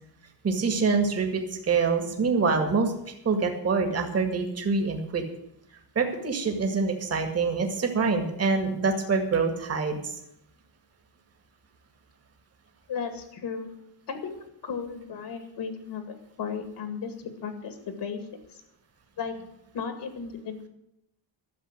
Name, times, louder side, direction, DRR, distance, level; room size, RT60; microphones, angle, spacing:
voice 1, 0.4-2.9 3.2-5.2 6.0-10.0, right 4 dB, 30° right, 4 dB, 2.0 m, -25 dB
voice 2, 12.9-13.7 14.1-14.3 14.6-17.1 17.4-18.2 18.5-18.6 19.2-19.3 19.7-20.7, left 6 dB, 60° left, 7 dB, 2.2 m, -35 dB
12.5 x 7.3 x 9.9 m, 0.79 s
cardioid pair, 165°, 47 cm